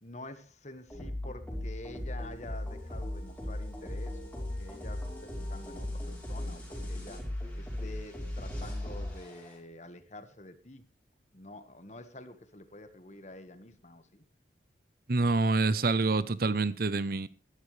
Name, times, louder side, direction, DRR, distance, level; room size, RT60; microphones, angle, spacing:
voice 1, 0.0-7.2 7.5-10.9 11.3-14.2, left 2 dB, 40° left, 1.6 m, -48 dB
sound 1, 0.9-9.6, left 1 dB, 10° left, 4.9 m, -38 dB
voice 2, 15.1-17.3, right 3 dB, 55° right, 0.8 m, -27 dB
21.0 x 11.5 x 3.3 m
head